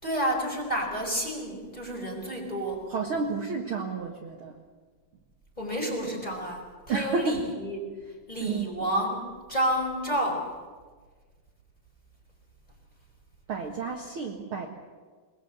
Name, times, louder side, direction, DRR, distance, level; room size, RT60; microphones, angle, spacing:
voice 1, 0.0-2.8 5.6-7.9 8.3-10.5, equal, 10° left, 1 dB, 4.7 m, -30 dB
voice 2, 2.9-4.6 6.9-7.4 8.4-8.9 13.5-14.7, right 4 dB, 55° right, 1 dB, 1.5 m, -31 dB
23.0 x 21.0 x 8.1 m, 1.5 s
omnidirectional pair, 4.7 m